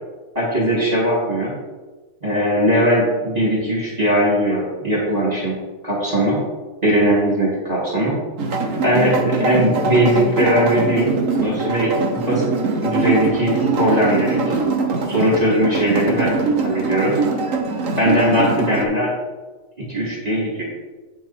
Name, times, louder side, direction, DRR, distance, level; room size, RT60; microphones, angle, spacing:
voice 1, 0.3-1.5 2.2-5.6 5.8-6.4 6.8-8.2 8.8-11.1 11.4-12.4 12.8-14.5 15.1-16.4 16.6-17.1 18.0-19.1 19.9-20.6, equal, 20° right, -6 dB, 3.1 m, -19 dB
sound 1, 8.4-18.8, right 3 dB, 50° right, 1.4 m, -22 dB
9.0 x 7.3 x 4.5 m, 1.3 s
omnidirectional pair, 1.8 m